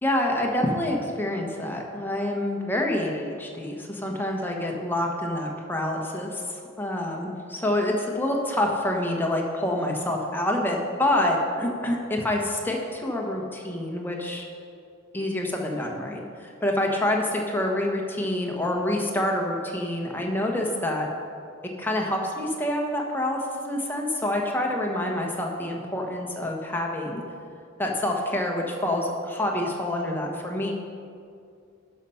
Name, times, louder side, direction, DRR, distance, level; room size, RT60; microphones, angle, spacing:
voice 1, 0.0-14.5 15.1-21.1 21.8-23.4 23.6-27.2 27.8-30.7, left 1 dB, 10° left, 0 dB, 1.1 m, -27 dB
11.5 x 5.6 x 5.6 m, 2.4 s
head